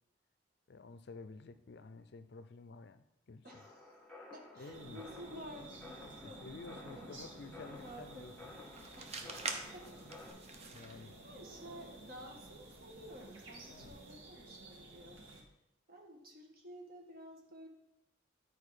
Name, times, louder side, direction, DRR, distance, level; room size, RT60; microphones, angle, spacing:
voice 1, 0.7-3.5 4.6-5.0 6.2-8.6 9.2-9.4 10.7-11.1 13.7-13.9, left 3 dB, 60° left, 11 dB, 0.5 m, -51 dB
sound 1, 3.4-10.3, left 2 dB, 5° left, 1.9 m, -54 dB
voice 2, 3.4-3.9 4.3-6.4 6.8-7.1 7.6-8.3 9.0-9.3 9.7-10.1 10.8-15.2 15.9-17.7, equal, 50° right, 1 dB, 1.5 m, -52 dB
sound 2, 4.7-15.4, right 2 dB, 80° right, 1.7 m, -53 dB
sound 3, 7.8-14.2, right 4 dB, 35° right, 0.8 m, -48 dB
10.5 x 4.6 x 4.9 m, 0.84 s
head